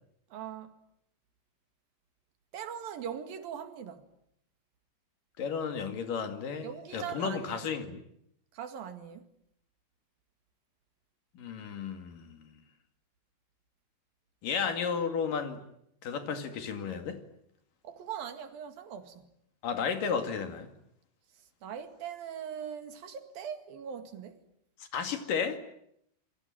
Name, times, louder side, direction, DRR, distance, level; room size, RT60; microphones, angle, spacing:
voice 1, 0.3-0.7 2.5-4.1 6.6-7.7 8.5-9.3 17.8-19.3 21.6-24.4, right 8 dB, 75° right, 3.9 m, -41 dB
voice 2, 5.4-8.0 11.4-12.5 14.4-15.6 16.0-17.2 19.6-20.7 24.9-25.6, left 6 dB, 70° left, 3.9 m, -33 dB
27.5 x 23.5 x 9.1 m
omnidirectional pair, 4.2 m